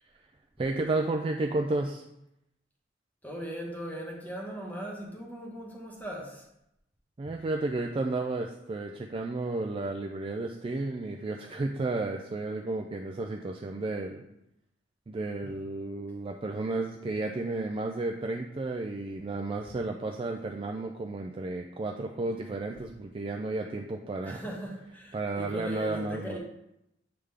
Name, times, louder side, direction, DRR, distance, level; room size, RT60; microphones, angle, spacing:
voice 1, 0.6-2.0 7.2-14.2 15.1-24.4 25.1-26.4, right 2 dB, 30° right, 3 dB, 0.3 m, -32 dB
voice 2, 3.2-6.5 15.4-15.5 24.2-26.4, equal, 10° left, -2 dB, 1.0 m, -39 dB
7.8 x 3.6 x 3.4 m, 0.83 s
head